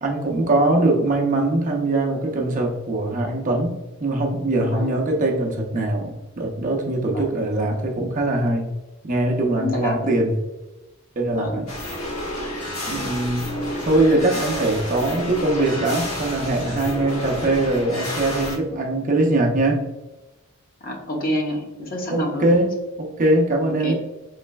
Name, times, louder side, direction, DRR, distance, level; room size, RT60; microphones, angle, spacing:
voice 1, 0.0-8.7 9.0-10.4 11.2-11.7 12.9-13.5 13.9-19.8 22.1-23.9, right 2 dB, 35° right, 0 dB, 0.6 m, -22 dB
voice 2, 4.6-4.9 7.1-7.3 9.6-10.2 11.3-11.6 20.8-22.5 23.8-23.9, left 1 dB, 40° left, 0 dB, 0.8 m, -28 dB
sound 1, 11.7-18.6, left 1 dB, 90° left, 1.2 m, -30 dB
4.2 x 3.2 x 2.2 m, 1.0 s
head